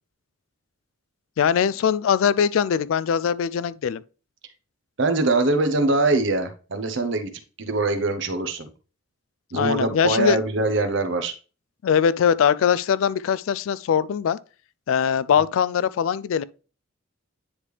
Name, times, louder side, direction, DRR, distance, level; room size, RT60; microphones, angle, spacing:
voice 1, 1.4-4.0 9.5-10.4 11.8-14.4 14.9-16.4, left 7 dB, 70° left, 0.3 m, -21 dB
voice 2, 5.0-7.3 7.6-8.7 9.5-11.3, right 2 dB, 60° right, 0.9 m, -23 dB
9.7 x 3.3 x 3.3 m
head